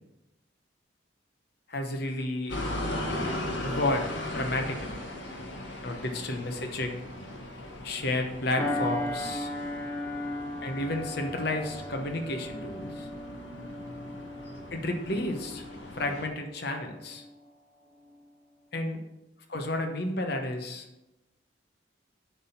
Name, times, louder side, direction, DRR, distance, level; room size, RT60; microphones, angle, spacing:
voice 1, 1.7-2.6 3.6-5.0 5.8-7.0 7.8-9.5 10.6-13.1 14.7-15.6 15.9-17.2 18.7-19.0 19.5-20.9, left 2 dB, 55° left, 4 dB, 1.0 m, -31 dB
sound 1, 2.5-16.3, left 1 dB, 70° left, 1.5 m, -38 dB
sound 2, 8.6-17.4 17.9-18.1, left 1 dB, 10° left, 1.2 m, -37 dB
9.6 x 3.7 x 5.8 m, 0.96 s
head